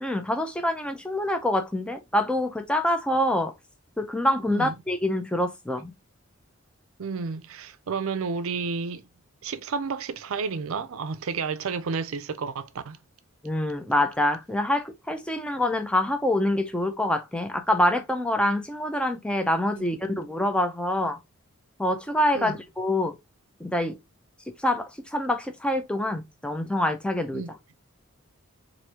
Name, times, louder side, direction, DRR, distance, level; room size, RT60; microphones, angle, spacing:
voice 1, 0.0-3.5 4.0-5.9 13.4-21.2 21.8-23.1 23.6-24.0 24.6-27.4, left 1 dB, 5° left, 0.5 m, -26 dB
voice 2, 7.0-9.0 9.4-13.0 19.7-19.9 22.3-22.6 27.3-27.5, right 5 dB, 70° right, 0.5 m, -31 dB
4.6 x 2.6 x 2.8 m
head